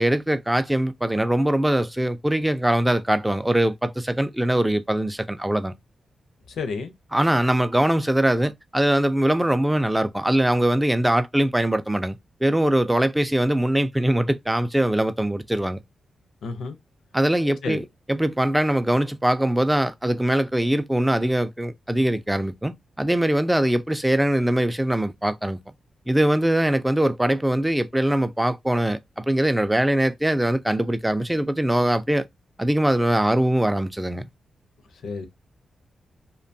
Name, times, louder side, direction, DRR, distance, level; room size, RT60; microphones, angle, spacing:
voice 1, 0.0-5.7 7.1-15.8 17.1-25.6 26.1-32.2 32.6-34.3, right 1 dB, 10° right, 0.3 m, -22 dB
voice 2, 6.5-6.9 16.4-16.8 17.6-17.8 35.0-35.3, left 4 dB, 85° left, 0.5 m, -30 dB
2.8 x 2.2 x 2.6 m
cardioid pair, 95°, 0 cm